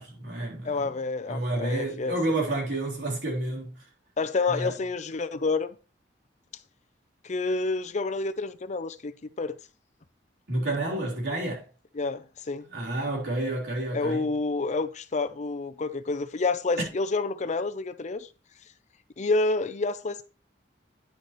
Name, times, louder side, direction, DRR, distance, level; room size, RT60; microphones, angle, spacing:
voice 1, 0.0-0.9 1.3-3.8 4.5-4.8 10.5-11.7 12.7-14.3, right 2 dB, 75° right, 3.6 m, -30 dB
voice 2, 0.6-2.2 4.2-5.7 7.2-9.1 9.4-9.6 12.0-12.6 13.9-18.3 19.2-20.2, left 3 dB, 40° left, 0.6 m, -28 dB
10.0 x 6.6 x 3.1 m
head